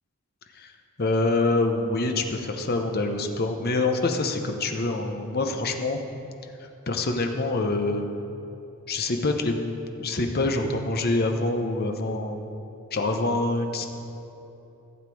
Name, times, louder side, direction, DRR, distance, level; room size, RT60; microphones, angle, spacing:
voice 1, 1.0-6.0 6.6-8.1 8.9-12.5 12.9-13.9, left 2 dB, 45° left, 5 dB, 0.8 m, -26 dB
15.5 x 7.3 x 4.7 m, 2.9 s
head